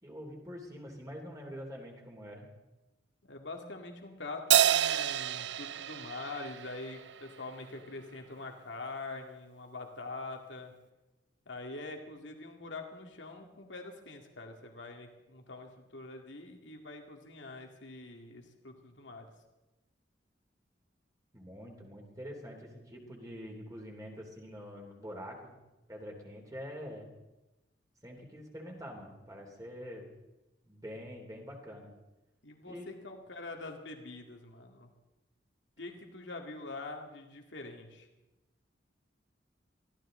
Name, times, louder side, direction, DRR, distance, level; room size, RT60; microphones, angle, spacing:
voice 1, 0.0-2.5 21.3-25.5 25.9-27.1 28.0-30.1 30.6-31.9 32.6-32.9, equal, 20° right, 1 dB, 3.2 m, -45 dB
voice 2, 3.2-10.7 11.5-19.3 32.4-34.9 35.8-38.1, left 3 dB, 80° left, 3 dB, 2.4 m, -44 dB
Crash cymbal, 4.5-7.2, right 10 dB, 70° right, 0.5 m, -28 dB
23.5 x 15.5 x 3.9 m, 1.0 s
head